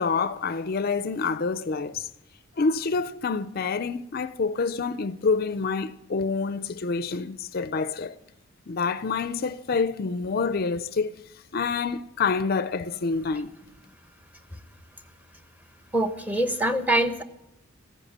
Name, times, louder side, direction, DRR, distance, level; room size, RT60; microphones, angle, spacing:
voice 1, 0.0-2.1 2.6-8.2 8.7-11.1 11.5-13.5, left 4 dB, 45° left, 0.4 m, -27 dB
voice 2, 15.9-17.2, right 1 dB, 10° right, 0.9 m, -24 dB
15.0 x 10.5 x 7.4 m
head